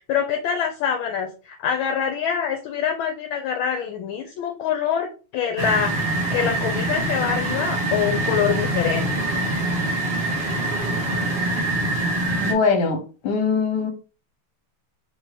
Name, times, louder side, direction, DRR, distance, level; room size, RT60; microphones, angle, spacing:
voice 1, 0.0-5.1 5.3-9.1, left 8 dB, 75° left, 5 dB, 1.3 m, -25 dB
sound 1, 5.6-12.5, right 1 dB, 65° right, 0.5 m, -24 dB
voice 2, 12.4-13.9, left 5 dB, 60° left, 4 dB, 1.5 m, -22 dB
3.8 x 2.8 x 3.1 m, 0.34 s
omnidirectional pair, 2.4 m